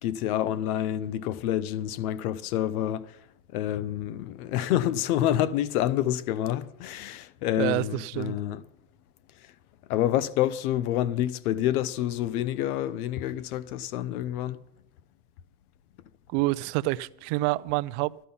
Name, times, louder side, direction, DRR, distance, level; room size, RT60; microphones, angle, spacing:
voice 1, 0.0-3.0 3.5-8.6 9.9-14.6, left 12 dB, 85° left, 1.0 m, -28 dB
voice 2, 7.6-8.4 16.3-18.3, right 19 dB, 55° right, 0.5 m, -28 dB
12.5 x 12.5 x 5.6 m
cardioid pair, 165°, 43 cm